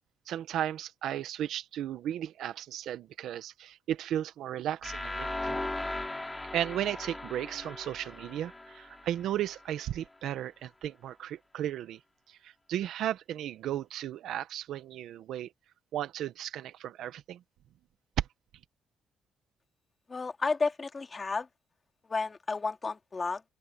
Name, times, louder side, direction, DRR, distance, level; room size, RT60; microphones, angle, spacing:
voice 1, 0.3-5.6 6.5-12.0 12.3-15.5 15.9-17.4 18.2-18.3, right 11 dB, 80° right, 1.3 m, -35 dB
sound 1, 4.8-9.7, left 2 dB, 15° left, 5.5 m, -38 dB
voice 2, 20.1-21.5 22.1-23.4, left 4 dB, 30° left, 2.4 m, -32 dB
cardioid pair, 90°, 0 cm